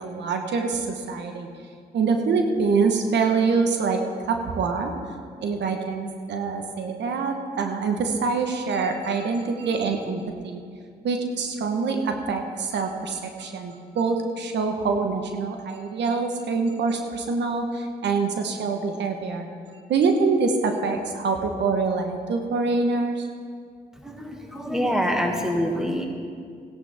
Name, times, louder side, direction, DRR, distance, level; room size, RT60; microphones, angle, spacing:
voice 1, 0.0-1.5 1.9-4.9 5.4-10.6 11.0-19.5 19.9-23.3, right 4 dB, 75° right, 4 dB, 1.1 m, -25 dB
voice 2, 24.0-26.1, equal, 5° right, 1 dB, 2.0 m, -25 dB
16.5 x 11.0 x 3.5 m, 2.2 s
supercardioid pair, 55°, 18 cm